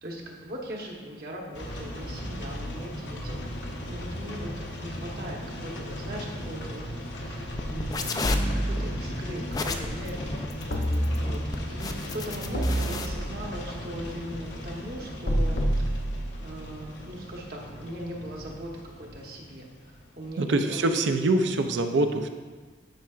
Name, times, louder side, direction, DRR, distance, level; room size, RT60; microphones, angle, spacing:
voice 1, 0.0-8.3 8.5-10.5 11.2-11.4 11.7-15.6 16.4-18.7 19.0-20.8, equal, 55° right, -1 dB, 1.1 m, -40 dB
sound 1, 1.5-20.5, equal, 80° left, 1.0 m, -38 dB
sound 2, 7.6-13.1, left 3 dB, 20° left, 0.3 m, -34 dB
sound 3, 8.2-9.3 10.7-11.7 12.5-13.6 15.3-16.7, equal, 60° left, 0.8 m, -28 dB
voice 2, 20.4-22.3, right 2 dB, 80° right, 7 dB, 0.5 m, -24 dB
10.5 x 5.6 x 2.4 m, 1.4 s
head